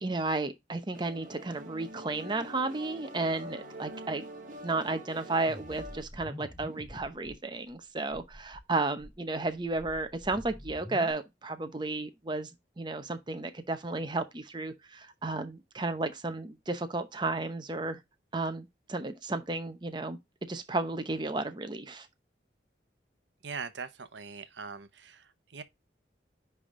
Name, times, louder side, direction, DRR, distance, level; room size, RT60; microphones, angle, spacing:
voice 1, 0.0-4.2 4.6-18.0 18.3-20.2 20.5-22.1, right 2 dB, 25° right, 0.8 m, -33 dB
sound 1, 0.9-6.0, right 1 dB, 45° right, 1.3 m, -45 dB
sound 2, 5.5-7.4 7.7-7.8 8.1-8.6 9.0-11.1, left 1 dB, 15° left, 3.7 m, -46 dB
voice 2, 23.4-25.6, right 5 dB, 80° right, 0.8 m, -41 dB
9.7 x 3.5 x 3.7 m
head